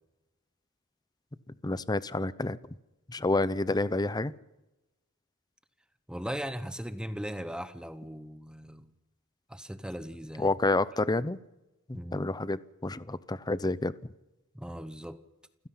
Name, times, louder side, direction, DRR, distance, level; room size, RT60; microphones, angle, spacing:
voice 1, 1.6-2.6 3.1-4.3 10.4-11.4 11.9-13.9, left 2 dB, 20° left, 0.6 m, -29 dB
voice 2, 6.1-8.9 9.5-10.5 11.9-12.3 14.5-15.2, equal, 5° right, 1.0 m, -38 dB
29.0 x 16.0 x 5.7 m
head